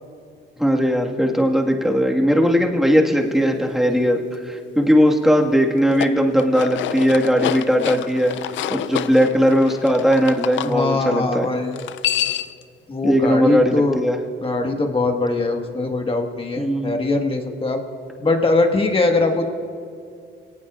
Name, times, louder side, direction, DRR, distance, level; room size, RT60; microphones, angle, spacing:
voice 1, 0.6-8.3 8.7-11.5 13.0-14.2 16.6-16.9, equal, ahead, 0 dB, 1.7 m, -18 dB
sound 1, 5.8-10.7 11.7-12.6, left 12 dB, 70° left, 0.5 m, -27 dB
voice 2, 10.6-11.8 12.9-14.0 14.4-17.8 18.2-19.4, left 2 dB, 25° left, 3 dB, 1.6 m, -21 dB
24.5 x 18.0 x 2.5 m, 2.3 s
cardioid pair, 90°, 20 cm